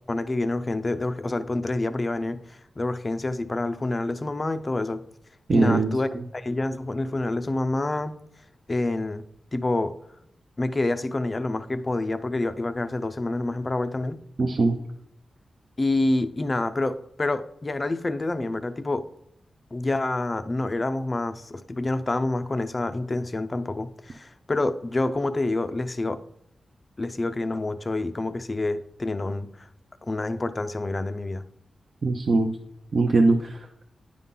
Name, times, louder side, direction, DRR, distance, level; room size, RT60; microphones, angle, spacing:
voice 1, 0.1-5.0 5.5-8.1 8.7-9.2 9.5-9.9 10.6-14.2 15.8-19.1 19.7-26.2 27.0-29.7 30.1-31.4, left 2 dB, 25° left, 10 dB, 0.5 m, -27 dB
voice 2, 5.5-5.9 14.4-14.8 32.0-32.5 32.9-33.6, right 3 dB, 45° right, 3 dB, 0.7 m, -21 dB
10.0 x 5.5 x 3.8 m, 0.76 s
wide cardioid pair, 150°, 0 cm